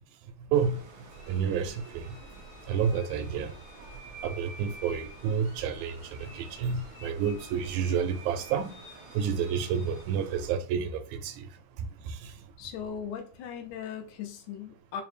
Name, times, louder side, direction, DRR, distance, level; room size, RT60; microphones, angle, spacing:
sound 1, 0.5-10.5, right 3 dB, 65° right, 0.9 m, -50 dB
voice 1, 0.5-0.8 1.3-2.1 2.7-3.5 4.2-8.8 9.1-11.5 12.1-12.2, right 7 dB, 85° right, 1.9 m, -29 dB
sound 2, 1.1-10.0, left 1 dB, 75° left, 1.6 m, -51 dB
voice 2, 12.6-15.0, left 8 dB, 90° left, 2.0 m, -38 dB
4.8 x 2.0 x 3.1 m
omnidirectional pair, 3.3 m